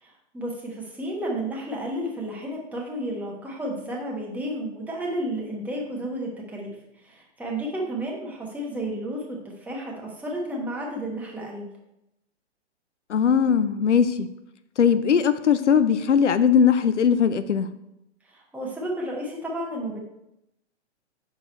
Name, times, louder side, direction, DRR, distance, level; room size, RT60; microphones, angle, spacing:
voice 1, 0.0-11.7 18.2-20.0, right 1 dB, 5° right, -3 dB, 1.1 m, -32 dB
voice 2, 13.1-14.3 14.8-17.7, left 7 dB, 90° left, 12 dB, 0.6 m, -20 dB
6.1 x 4.6 x 4.3 m, 0.85 s
hypercardioid pair, 130°, 35 cm